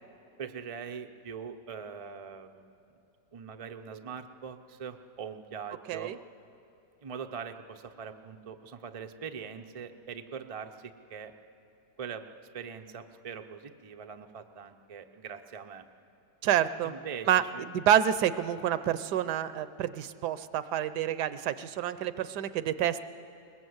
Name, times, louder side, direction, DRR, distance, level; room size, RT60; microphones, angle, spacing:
voice 1, 0.4-2.8 3.3-6.1 7.0-11.3 12.0-12.3 12.5-15.9 16.8-17.3 17.5-17.7, right 6 dB, 55° right, 6 dB, 0.3 m, -42 dB
voice 2, 16.4-16.9 17.3-17.4 17.7-23.0, right 10 dB, 75° right, 14 dB, 1.2 m, -28 dB
21.5 x 20.0 x 8.0 m, 2.7 s
omnidirectional pair, 1.9 m